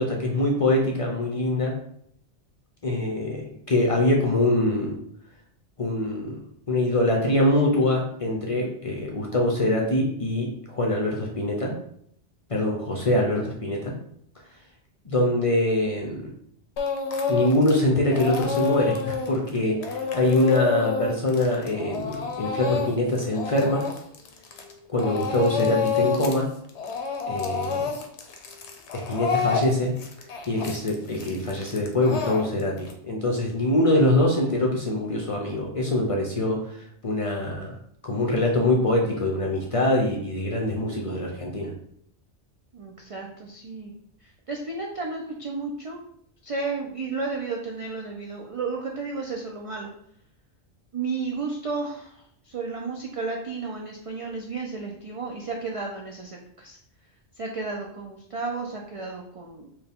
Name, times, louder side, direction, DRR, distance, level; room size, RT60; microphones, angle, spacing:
voice 1, 0.0-1.7 2.8-5.0 5.8-6.4 6.7-11.7 12.5-13.9 15.0-16.3 17.3-23.8 24.9-26.5 27.3-27.9 28.9-29.9 30.5-37.8 38.0-41.7, left 1 dB, 40° left, -1 dB, 0.5 m, -24 dB
Speech / Crying sobbing, 16.8-17.8 18.1-24.7 25.0-26.4 26.7-32.9, left 5 dB, 80° left, 0.9 m, -28 dB
voice 2, 42.7-43.9 44.2-46.0 46.4-49.9 50.9-56.8 57.3-59.7, right 4 dB, 60° right, 0 dB, 0.3 m, -33 dB
4.4 x 2.2 x 3.5 m, 0.68 s
omnidirectional pair, 1.2 m